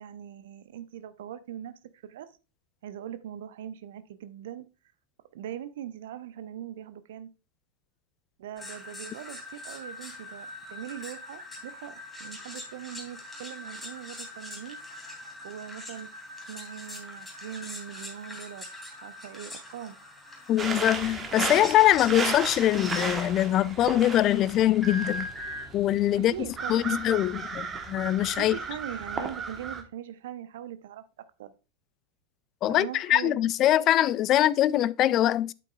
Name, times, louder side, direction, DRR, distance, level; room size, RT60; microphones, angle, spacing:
voice 1, 0.0-2.3 2.8-4.7 5.3-7.3 8.4-11.9 12.2-14.8 15.1-16.1 16.5-18.7 18.9-20.0 26.2-27.0 28.4-31.0 31.4-31.5 32.7-33.4, right 11 dB, 55° right, 0.7 m, -41 dB
sound 1, 8.6-23.5 24.8-25.7, left 1 dB, 5° left, 2.7 m, -42 dB
voice 2, 20.5-25.3 25.7-26.3 26.7-28.5 32.6-35.5, left 13 dB, 35° left, 0.3 m, -23 dB
sound 2, 20.6-29.8, right 4 dB, 20° right, 1.3 m, -35 dB
9.2 x 8.4 x 2.4 m
figure-of-eight pair, 90°, 0 cm